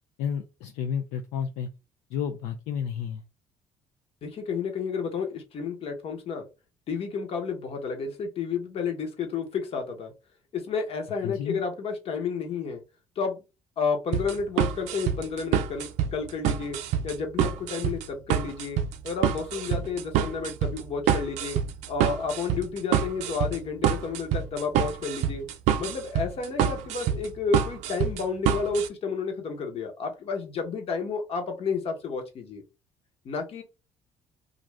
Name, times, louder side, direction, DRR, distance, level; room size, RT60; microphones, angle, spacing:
voice 1, 0.2-1.7 2.1-3.2 11.2-11.6, left 8 dB, 75° left, 6 dB, 0.4 m, -31 dB
voice 2, 4.2-6.5 6.9-10.1 10.5-12.8 13.2-13.4 13.8-16.8 17.0-21.6 21.9-25.5 25.8-32.6 33.2-33.6, left 5 dB, 55° left, 4 dB, 1.0 m, -31 dB
sound 1, 14.1-28.9, right 9 dB, 75° right, 0.4 m, -27 dB
2.5 x 2.4 x 3.2 m, 0.28 s
supercardioid pair, 65°, 12 cm